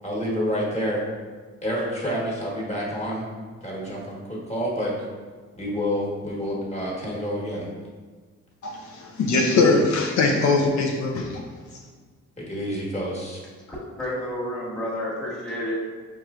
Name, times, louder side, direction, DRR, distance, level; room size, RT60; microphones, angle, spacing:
voice 1, 0.0-1.0 1.6-3.3 3.6-4.9 5.6-7.7 12.4-13.4, equal, 20° left, -5 dB, 1.3 m, -28 dB
voice 2, 8.6-11.3, left 3 dB, 70° left, -1 dB, 0.6 m, -21 dB
voice 3, 13.7-15.9, equal, 5° left, -6 dB, 1.2 m, -30 dB
4.7 x 3.1 x 2.4 m, 1.5 s
cardioid pair, 90°, 30 cm